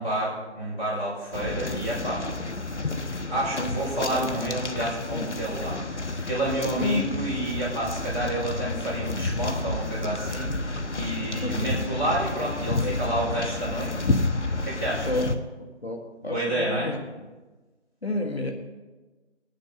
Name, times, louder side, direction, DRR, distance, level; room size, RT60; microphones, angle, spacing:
voice 1, 0.0-2.2 3.3-14.1 14.6-15.2 16.3-16.9, right 1 dB, ahead, -29 dB, 3.6 m, -29 dB
sound 1, 1.3-15.3, left 2 dB, 80° left, 1.2 m, -30 dB
voice 2, 5.1-5.4 6.6-7.1 11.4-11.8 12.8-12.9 15.0-15.3 15.6-17.0 18.0-18.5, left 2 dB, 60° left, 3 dB, 1.6 m, -30 dB
19.0 x 10.0 x 4.1 m, 1.2 s
figure-of-eight pair, 180°, 35 cm